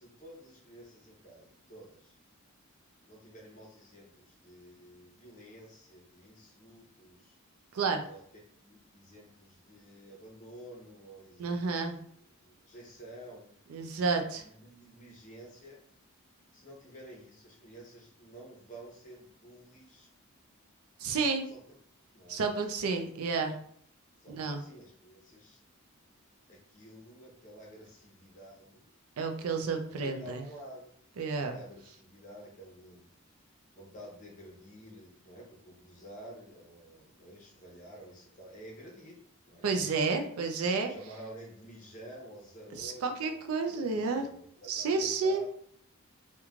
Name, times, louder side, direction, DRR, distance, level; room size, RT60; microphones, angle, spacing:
voice 1, 0.0-2.2 3.1-7.4 8.0-8.2 8.5-11.9 12.2-13.5 14.2-15.8 16.5-20.1 21.5-21.6 22.1-22.4 24.2-25.6 26.5-28.9 30.0-30.9 31.4-33.1 33.7-40.2 40.9-45.5, right 1 dB, 35° left, -2 dB, 0.7 m, -51 dB
voice 2, 11.4-11.9 13.7-14.4 21.0-21.4 22.3-23.6 24.3-24.6 29.2-30.4 31.2-31.6 39.6-40.9 42.7-44.3 44.7-45.4, right 4 dB, 75° right, 5 dB, 0.4 m, -30 dB
3.0 x 2.2 x 2.4 m, 0.62 s
head